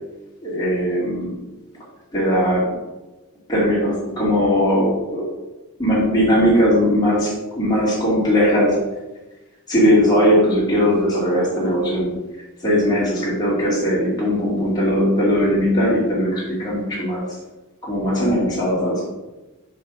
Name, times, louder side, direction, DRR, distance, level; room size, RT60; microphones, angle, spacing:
voice 1, 0.4-1.3 2.1-2.8 3.5-5.3 5.8-8.8 9.7-12.1 12.6-17.2 17.8-19.0, equal, 20° left, -7 dB, 2.3 m, -19 dB
6.2 x 3.5 x 6.1 m, 1.1 s
head